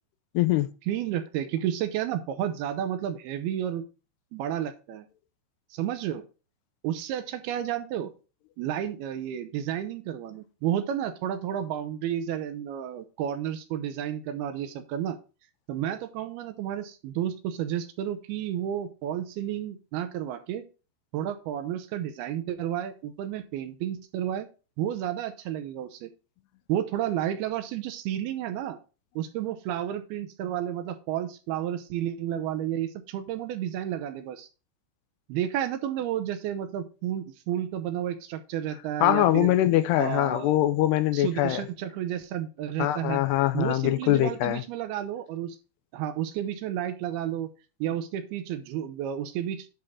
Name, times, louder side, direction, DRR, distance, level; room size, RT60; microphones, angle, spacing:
voice 1, 0.3-0.7 39.0-41.6 42.8-44.6, left 14 dB, 85° left, 2.8 m, -23 dB
voice 2, 0.9-3.8 4.3-5.1 5.7-6.2 6.8-8.1 8.6-15.2 15.7-20.6 21.1-24.5 24.8-26.1 26.7-28.8 29.2-34.5 35.3-39.5 40.0-40.6 41.1-43.2 43.5-45.6 45.9-47.5 47.8-49.7, right 11 dB, 80° right, 2.7 m, -31 dB
10.5 x 3.7 x 5.6 m
omnidirectional pair, 4.7 m